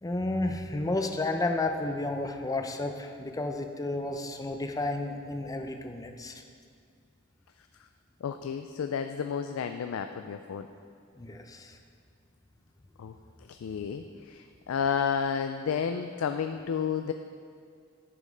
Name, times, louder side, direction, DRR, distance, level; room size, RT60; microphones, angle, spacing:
voice 1, 0.0-6.3 11.2-11.8, left 2 dB, 15° left, 4 dB, 0.5 m, -32 dB
voice 2, 8.2-10.7 13.0-13.1 13.5-17.1, left 7 dB, 75° left, 7 dB, 0.3 m, -31 dB
9.8 x 5.3 x 5.1 m, 2.2 s
head